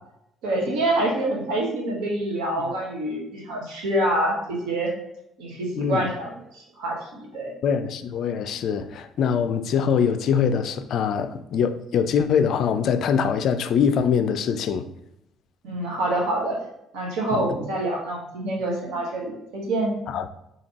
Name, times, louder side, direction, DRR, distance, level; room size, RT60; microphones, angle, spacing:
voice 1, 0.4-4.9 5.4-7.5 15.6-16.6 16.9-20.0, right 1 dB, 70° right, 1.1 m, -26 dB
voice 2, 5.8-6.1 7.6-14.9 17.3-17.6 20.1-20.3, left 7 dB, 60° left, 0.3 m, -23 dB
4.2 x 2.8 x 2.8 m
hypercardioid pair, 50°, 0 cm